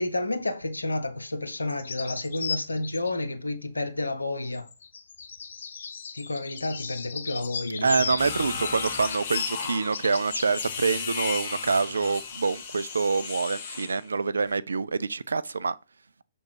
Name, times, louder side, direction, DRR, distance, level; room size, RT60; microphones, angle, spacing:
voice 1, 0.0-4.7 6.1-7.9, left 2 dB, 85° left, 1.0 m, -30 dB
sound 1, 1.5-3.1 4.4-10.7, left 6 dB, 60° left, 0.6 m, -36 dB
voice 2, 7.8-15.8, right 4 dB, 70° right, 0.4 m, -26 dB
sound 2, 8.2-14.0, left 6 dB, 40° left, 1.2 m, -35 dB
6.4 x 3.5 x 4.6 m
figure-of-eight pair, 125°, 0 cm